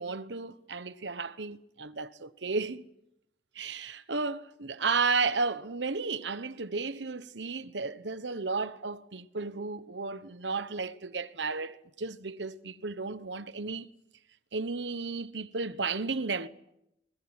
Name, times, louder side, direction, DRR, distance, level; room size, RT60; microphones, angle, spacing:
voice 1, 0.0-2.8 3.5-13.9 14.5-16.5, right 4 dB, 85° right, 1.1 m, -33 dB
23.0 x 19.5 x 9.7 m
head